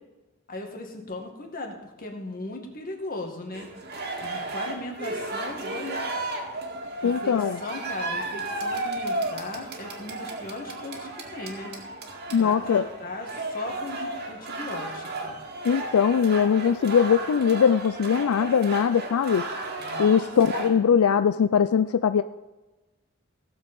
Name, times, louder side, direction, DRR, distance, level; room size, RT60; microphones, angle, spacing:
voice 1, 0.5-3.7 4.2-6.3 7.0-11.7 12.4-15.4 19.8-20.3 20.6-20.8, left 2 dB, 40° left, 2 dB, 2.0 m, -37 dB
sound 1, 3.5-20.7, right 2 dB, 50° right, 2.0 m, -34 dB
voice 2, 7.0-7.6 12.3-12.8 15.6-19.5 20.0-22.2, left 7 dB, 85° left, 12 dB, 0.4 m, -21 dB
16.5 x 7.2 x 5.3 m, 1.1 s
head